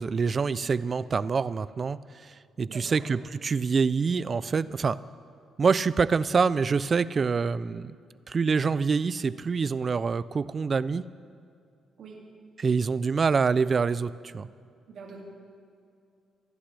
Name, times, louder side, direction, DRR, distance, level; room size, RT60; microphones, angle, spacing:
voice 1, 0.0-5.0 5.6-7.9 8.3-11.0 12.6-14.5, right 5 dB, 40° right, 17 dB, 0.4 m, -26 dB
voice 2, 2.7-3.0 12.0-12.2 14.9-15.2, right 5 dB, 65° right, -1 dB, 2.3 m, -44 dB
25.5 x 11.5 x 3.4 m, 2.4 s
cardioid pair, 90°, 0 cm